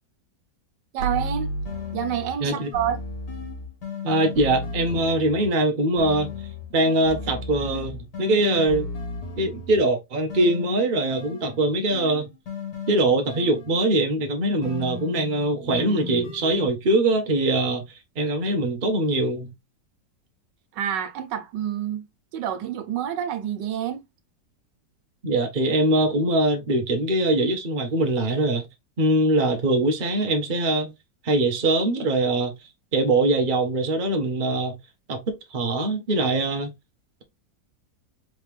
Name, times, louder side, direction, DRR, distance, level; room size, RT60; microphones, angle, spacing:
voice 1, 0.9-1.5 1.9-3.0 20.7-22.1 22.3-24.0, right 10 dB, 80° right, 1.3 m, -28 dB
sound 1, 1.0-5.6 6.0-9.9 10.3-14.0 14.6-16.7, left 3 dB, 60° left, 2.0 m, -34 dB
voice 2, 4.0-6.3 6.7-8.9 9.4-12.3 12.9-17.8 18.2-19.5 25.2-28.7 29.0-30.9 31.2-32.5 32.9-34.8 35.1-36.7, right 2 dB, 35° right, 0.9 m, -22 dB
3.9 x 3.5 x 3.2 m
omnidirectional pair, 1.9 m